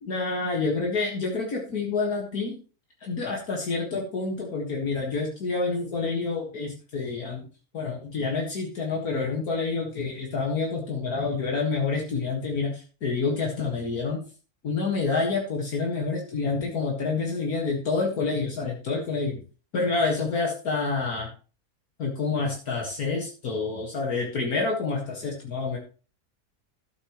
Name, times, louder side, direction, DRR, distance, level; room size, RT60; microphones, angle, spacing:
voice 1, 0.0-2.5 3.0-7.5 7.7-14.2 14.6-19.4 19.7-21.3 22.0-25.8, left 4 dB, 65° left, -1 dB, 2.2 m, -28 dB
13.0 x 8.0 x 3.0 m, 0.36 s
omnidirectional pair, 1.7 m